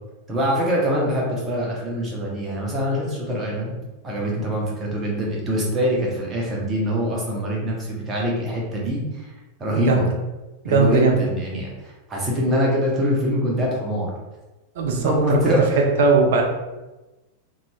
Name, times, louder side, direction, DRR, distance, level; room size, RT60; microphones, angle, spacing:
voice 1, 0.3-3.7 4.0-9.3 9.6-10.0 10.6-11.7 12.1-14.1 15.0-15.8, equal, 20° right, -3 dB, 0.8 m, -24 dB
voice 2, 9.7-10.1 10.6-11.2 14.8-16.4, right 4 dB, 55° right, 2 dB, 0.5 m, -19 dB
3.0 x 2.6 x 2.2 m, 1.1 s
figure-of-eight pair, 90°, 0 cm